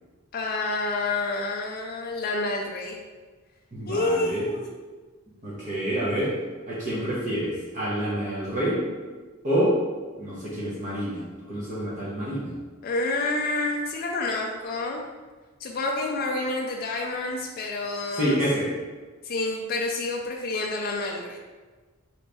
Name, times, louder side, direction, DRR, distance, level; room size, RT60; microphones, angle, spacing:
voice 1, 0.3-3.0 3.9-4.7 12.8-15.1 15.6-18.4 19.2-21.4, left 2 dB, 45° left, 0 dB, 0.3 m, -28 dB
voice 2, 3.7-4.4 5.4-6.3 6.7-8.8 9.4-9.7 10.2-11.2 11.5-12.5 18.1-18.7, equal, 35° right, -7 dB, 0.8 m, -27 dB
4.0 x 3.1 x 3.4 m, 1.3 s
head